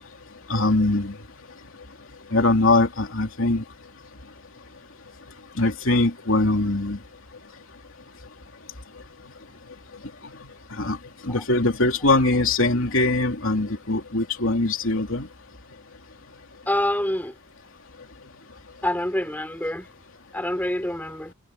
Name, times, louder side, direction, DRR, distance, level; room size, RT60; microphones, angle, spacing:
voice 1, 0.5-1.2 2.3-3.6 5.6-7.0 10.8-11.0 11.2-15.3, left 2 dB, 65° left, 3.3 m, -22 dB
voice 2, 16.7-17.3 18.8-19.9 20.3-21.3, left 1 dB, 10° left, 3.9 m, -26 dB
head